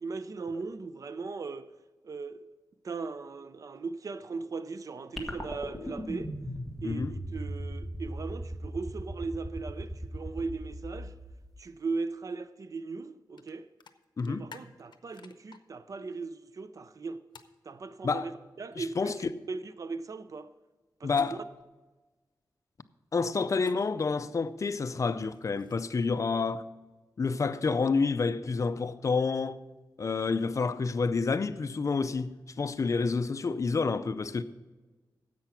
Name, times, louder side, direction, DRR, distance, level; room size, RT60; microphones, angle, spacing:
voice 1, 0.0-1.7 2.0-2.4 2.8-6.3 6.8-11.1 11.6-13.7 14.2-17.2 17.6-19.1 19.5-20.5 21.0-21.4, right 4 dB, 45° right, 0.5 m, -38 dB
sound 1, 5.2-11.7, equal, ahead, 1.5 m, -38 dB
sound 2, 13.4-13.5 13.8-15.6 17.3-17.6 21.1-21.6 23.4-23.8 25.1-26.0, left 6 dB, 85° left, 0.7 m, -51 dB
voice 2, 14.2-14.5 18.0-18.3 18.8-19.1 21.0-21.4 23.1-26.6 27.2-29.6 30.0-34.4, left 4 dB, 45° left, 0.5 m, -29 dB
10.5 x 7.7 x 5.8 m
wide cardioid pair, 130°, 8 cm